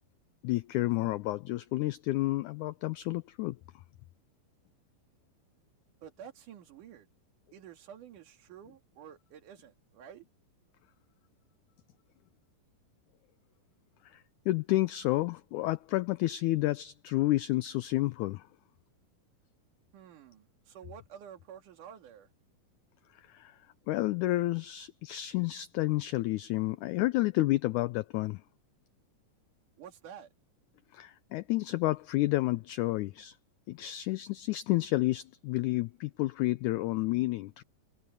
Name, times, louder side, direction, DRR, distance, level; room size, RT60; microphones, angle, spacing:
voice 1, 0.4-3.6 14.0-18.5 23.3-23.6 23.9-28.4 30.9-33.4 33.7-37.6, left 18 dB, 90° left, 1.7 m, -30 dB
voice 2, 6.0-7.1 7.5-10.2 19.9-22.3 29.8-30.3, right 9 dB, 65° right, 3.4 m, -50 dB
omnidirectional pair, 4.1 m